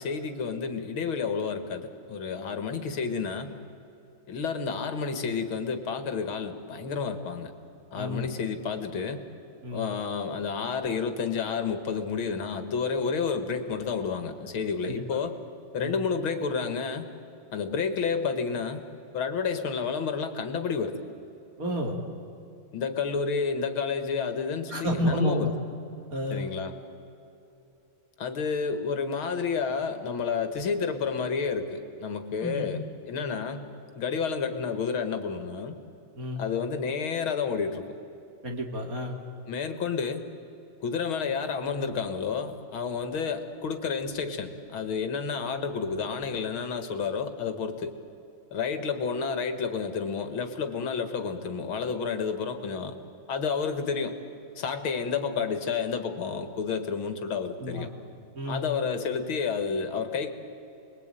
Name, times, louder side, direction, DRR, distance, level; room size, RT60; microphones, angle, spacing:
voice 1, 0.0-3.6 4.3-7.5 7.9-9.2 9.7-15.4 15.7-17.1 17.5-18.8 19.1-21.0 22.7-25.5 26.3-26.7 28.2-33.7 34.0-35.8 36.4-37.9 39.5-40.2 40.8-47.9 48.5-52.9 53.3-54.2 54.6-57.9 58.5-60.3, left 5 dB, 85° left, 8 dB, 2.6 m, -30 dB
voice 2, 8.0-8.3 9.6-9.9 14.8-14.9 15.8-15.9 21.6-22.0 24.7-25.5 26.1-26.5 32.4-32.7 36.1-36.4 38.4-39.2 57.6-57.9 58.3-58.7, equal, 45° right, 2 dB, 3.2 m, -30 dB
29.5 x 21.5 x 9.2 m, 2.9 s
omnidirectional pair, 2.2 m